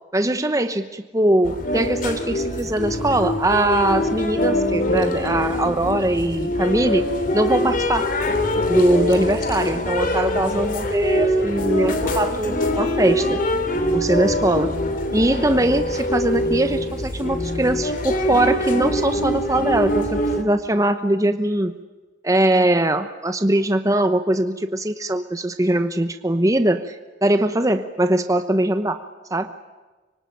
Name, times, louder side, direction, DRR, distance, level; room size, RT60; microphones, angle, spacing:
voice 1, 0.1-7.1 7.3-8.1 8.7-13.4 13.9-14.7 15.1-21.7 22.2-29.0 29.3-29.5, right 1 dB, 20° right, 9 dB, 1.0 m, -21 dB
sound 1, 1.4-20.4, left 1 dB, 50° left, 3.0 m, -23 dB
25.5 x 24.5 x 9.0 m, 1.2 s
head